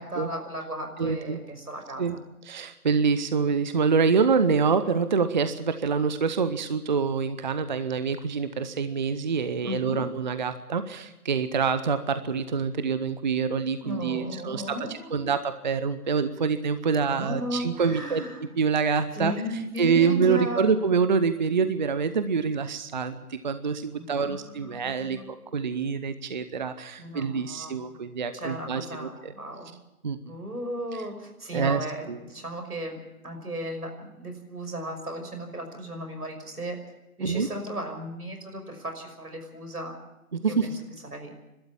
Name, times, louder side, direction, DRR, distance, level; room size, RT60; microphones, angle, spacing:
voice 1, 0.0-2.2 9.6-10.0 13.8-15.3 17.0-18.4 19.1-20.7 23.9-25.3 27.0-27.8 28.3-29.8 30.2-33.0 33.2-36.8 37.2-39.9 40.5-40.7 41.1-41.3, equal, 85° right, 5 dB, 5.8 m, -35 dB
voice 2, 1.0-1.4 2.0-2.2 2.5-14.6 14.9-18.2 18.6-19.3 19.8-25.2 25.5-29.3 30.0-30.2 31.5-32.2 37.2-37.5 40.3-40.7, right 5 dB, 30° right, 11 dB, 0.7 m, -26 dB
29.0 x 12.5 x 7.2 m, 0.96 s
figure-of-eight pair, 150°, 45 cm